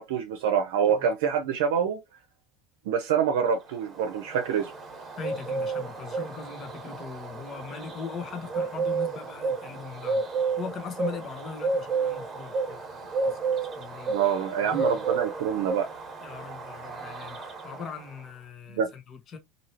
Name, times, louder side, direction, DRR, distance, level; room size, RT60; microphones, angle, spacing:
voice 1, 0.0-2.0 2.9-4.7 14.1-15.9 18.7-18.9, right 7 dB, 85° right, 0.6 m, -26 dB
Bird, 3.6-18.3, right 4 dB, 30° right, 1.2 m, -32 dB
voice 2, 5.2-14.1 14.6-15.0 16.2-19.4, left 6 dB, 40° left, 1.0 m, -40 dB
3.0 x 2.7 x 2.8 m
supercardioid pair, 110°, 0 cm